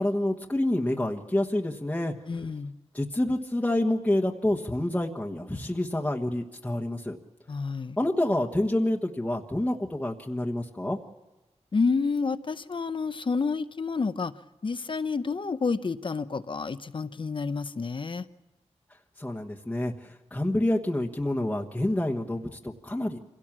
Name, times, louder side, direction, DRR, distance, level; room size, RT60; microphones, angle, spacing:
voice 1, 0.0-2.1 2.9-7.2 8.0-11.0 19.2-23.2, left 1 dB, 10° left, 1 dB, 1.3 m, -28 dB
voice 2, 2.3-2.7 7.5-8.0 11.7-14.4 14.6-18.2, left 4 dB, 45° left, 13 dB, 0.8 m, -29 dB
26.5 x 17.0 x 7.4 m, 1.1 s
wide cardioid pair, 115°, 12 cm